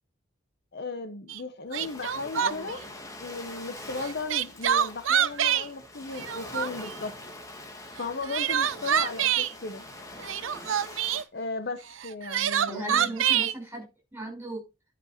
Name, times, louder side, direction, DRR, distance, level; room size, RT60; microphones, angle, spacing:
voice 1, 0.7-2.8 3.2-7.1 8.0-9.9 11.3-13.1, left 3 dB, 55° left, 10 dB, 0.9 m, -36 dB
Crying sobbing, 1.3-1.4 1.7-2.8 4.0-5.7 6.1-6.9 8.0-9.5 10.2-11.2 12.0-13.5, right 9 dB, 80° right, 0.6 m, -26 dB
Ocean, 1.7-11.2, left 2 dB, 15° left, 1.5 m, -44 dB
voice 2, 2.3-2.7 10.5-10.7 12.7-13.9 14.1-14.6, right 2 dB, 10° right, 1 dB, 5.3 m, -37 dB
10.5 x 5.2 x 4.4 m, 0.26 s
head